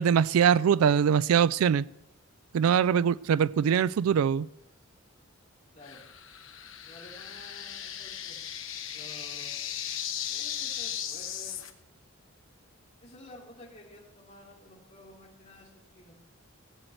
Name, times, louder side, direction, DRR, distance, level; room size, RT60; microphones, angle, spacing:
voice 1, 0.0-1.8 2.5-4.5, right 7 dB, 85° right, 0.3 m, -23 dB
voice 2, 5.7-6.0 6.8-8.4 8.9-10.0 10.3-11.6 13.0-16.2, left 1 dB, 35° left, 2.6 m, -51 dB
sound 1, 5.8-11.7, left 9 dB, 65° left, 1.0 m, -37 dB
16.5 x 7.8 x 4.5 m
head